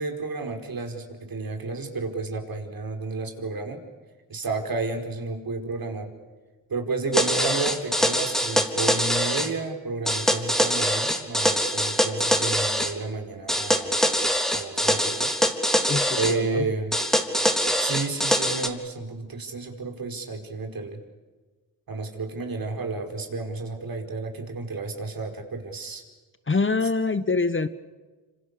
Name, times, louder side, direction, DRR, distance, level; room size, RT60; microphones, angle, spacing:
voice 1, 0.0-3.8 4.3-6.1 6.7-14.0 14.5-15.3 16.2-16.9 17.8-21.0 21.9-26.0, right 3 dB, 55° right, 5 dB, 5.2 m, -31 dB
sound 1, 7.1-9.5 10.1-12.9 13.5-16.4 16.9-18.7, equal, ahead, 3.6 m, -23 dB
voice 2, 15.9-16.7 26.5-27.7, left 4 dB, 30° left, 13 dB, 1.3 m, -25 dB
27.0 x 26.5 x 6.9 m, 1.3 s
supercardioid pair, 45°, 43 cm